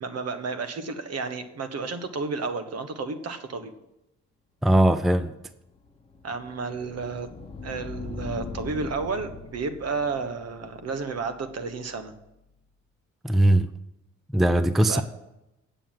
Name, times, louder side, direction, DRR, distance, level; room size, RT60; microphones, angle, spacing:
voice 1, 0.0-3.7 6.2-7.3 7.6-12.1 14.9-15.0, right 4 dB, 55° right, 10 dB, 1.3 m, -32 dB
voice 2, 4.6-5.3 13.2-13.7 14.3-15.0, right 1 dB, ahead, 12 dB, 0.5 m, -20 dB
sound 1, 5.4-12.3, left 4 dB, 20° left, 1.1 m, -41 dB
9.0 x 7.0 x 7.6 m, 0.90 s
cardioid pair, 90°, 30 cm